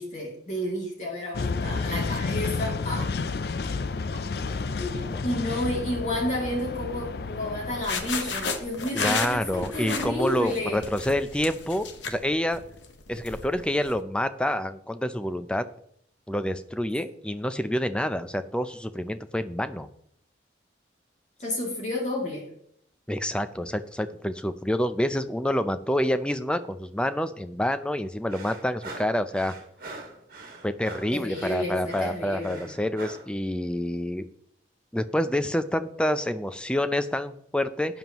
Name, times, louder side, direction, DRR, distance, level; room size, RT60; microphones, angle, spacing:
voice 1, 0.0-3.2 4.3-10.8 21.4-22.5 31.1-32.7, left 1 dB, 40° left, -2 dB, 2.7 m, -31 dB
sound 1, 1.3-7.8, left 4 dB, 55° left, 0.4 m, -30 dB
sound 2, 7.7-14.0, left 4 dB, 85° left, 1.1 m, -33 dB
voice 2, 8.9-12.6 13.1-15.6 16.3-19.9 23.1-29.5 30.6-34.2 34.9-38.0, left 1 dB, 5° left, 11 dB, 0.5 m, -28 dB
sound 3, 28.3-33.3, right 3 dB, 50° right, 1.9 m, -43 dB
12.5 x 9.3 x 3.0 m, 0.69 s
head